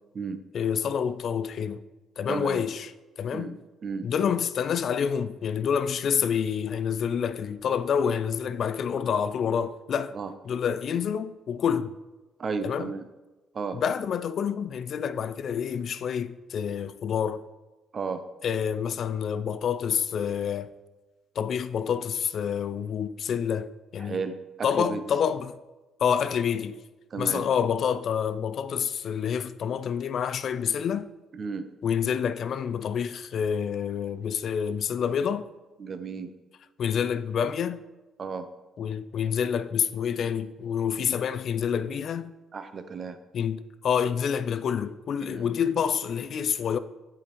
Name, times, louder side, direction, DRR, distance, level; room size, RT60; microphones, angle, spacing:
voice 1, 0.5-1.8 2.2-2.9 3.2-3.6 4.0-10.1 10.4-11.9 12.6-12.9 13.7-17.4 18.4-20.7 21.4-24.2 24.6-25.6 26.0-26.8 27.2-31.1 31.8-35.5 36.8-37.8 38.8-42.3 43.3-46.8, left 7 dB, 60° left, 0.3 m, -28 dB
voice 2, 2.3-2.6 3.3-3.6 3.8-4.1 10.1-10.3 12.4-13.0 13.5-13.8 17.9-18.2 24.0-25.0 27.1-27.4 31.3-31.7 35.8-36.3 38.2-38.5 42.5-43.2 45.2-45.5, right 5 dB, 45° right, 0.6 m, -33 dB
8.3 x 5.0 x 3.0 m
supercardioid pair, 70°, 0 cm